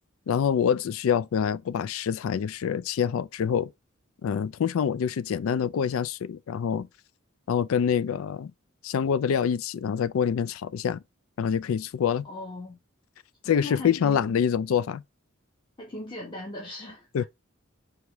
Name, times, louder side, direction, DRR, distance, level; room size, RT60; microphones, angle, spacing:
voice 1, 0.3-3.7 4.2-6.9 7.5-8.5 8.8-11.0 11.4-12.3 13.5-15.0 17.1-17.2, left 7 dB, 75° left, 0.3 m, -26 dB
voice 2, 12.2-12.8 13.6-14.2 15.8-17.1, left 2 dB, 25° left, 1.3 m, -38 dB
4.7 x 3.1 x 3.3 m
head